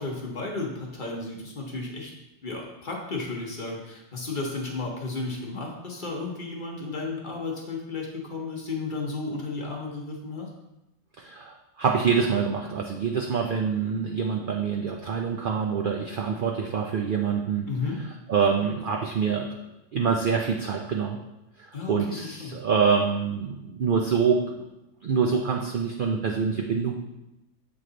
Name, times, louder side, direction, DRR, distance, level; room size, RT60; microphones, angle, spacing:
voice 1, 0.0-2.1 2.4-10.5 17.7-18.0 21.7-22.6, left 3 dB, 40° left, -1 dB, 1.0 m, -33 dB
voice 2, 11.2-17.7 18.3-19.7 19.9-21.2 21.9-24.6 25.0-26.9, right 6 dB, 65° right, 1 dB, 0.5 m, -25 dB
7.7 x 3.2 x 3.9 m, 0.94 s
omnidirectional pair, 1.4 m